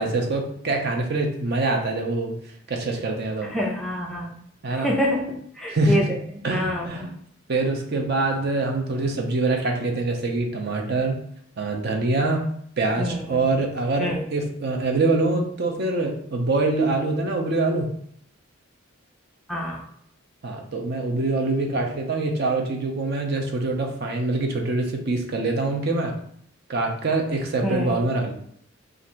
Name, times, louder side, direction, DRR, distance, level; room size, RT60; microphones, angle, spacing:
voice 1, 0.0-2.3 2.7-3.5 4.6-4.9 5.7-6.0 6.4-7.1 7.5-11.2 11.6-12.4 12.8-17.9 20.4-26.2 26.7-28.3, right 2 dB, 50° right, 2 dB, 0.6 m, -24 dB
voice 2, 3.4-4.4 4.7-6.1 6.5-7.2 13.0-13.4 14.0-14.3 19.5-19.8 27.6-28.0, equal, ahead, -2 dB, 0.4 m, -27 dB
2.7 x 2.5 x 4.3 m, 0.66 s
head